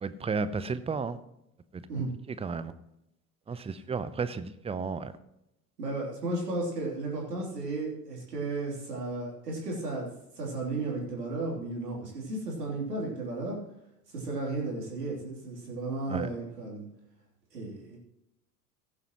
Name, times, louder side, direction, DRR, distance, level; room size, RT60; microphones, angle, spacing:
voice 1, 0.0-1.2 1.7-1.9 2.3-2.7 3.5-5.1 16.1-16.3, right 5 dB, 10° right, 14 dB, 0.7 m, -33 dB
voice 2, 5.8-10.1 10.3-13.6 14.1-16.9 17.5-18.0, right 2 dB, 80° right, -2 dB, 3.3 m, -34 dB
16.5 x 9.4 x 3.0 m, 0.85 s
figure-of-eight pair, 70°, 48 cm